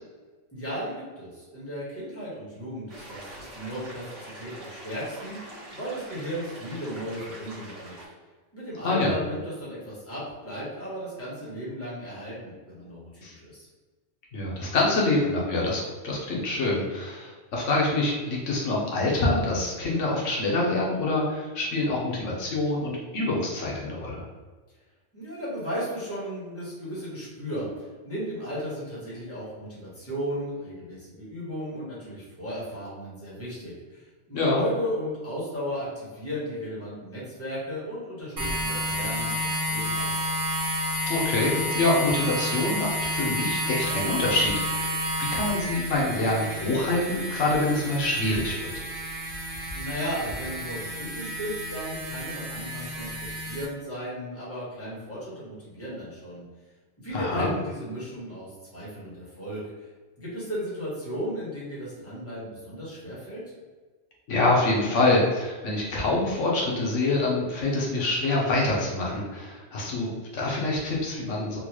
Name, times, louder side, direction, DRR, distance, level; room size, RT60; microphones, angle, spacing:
voice 1, 0.5-7.9 8.5-13.7 25.1-40.3 49.7-56.4 57.0-59.9 60.2-63.4, equal, 10° left, -8 dB, 1.3 m, -35 dB
sound 1, 2.9-8.1, right 1 dB, 60° right, 1.4 m, -43 dB
voice 2, 8.8-9.1 13.2-13.4 14.3-24.2 34.3-34.6 41.1-48.8 57.1-57.5 64.3-71.6, left 2 dB, 80° left, -3 dB, 1.1 m, -26 dB
sound 2, 38.4-53.7, equal, 40° right, 0.5 m, -30 dB
3.7 x 2.3 x 3.0 m, 1.3 s
omnidirectional pair, 1.2 m